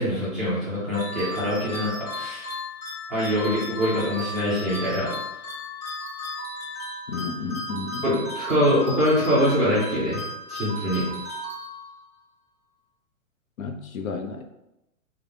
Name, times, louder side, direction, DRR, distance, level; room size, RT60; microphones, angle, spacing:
voice 1, 0.0-2.5 3.1-5.1 8.0-10.2 10.5-11.0, equal, ahead, -13 dB, 0.3 m, -24 dB
sound 1, 0.9-12.2, left 1 dB, 30° left, 1.3 m, -35 dB
voice 2, 7.1-8.2 13.6-14.4, left 4 dB, 70° left, 5 dB, 0.7 m, -32 dB
3.4 x 2.3 x 3.7 m, 0.89 s
hypercardioid pair, 130°, 42 cm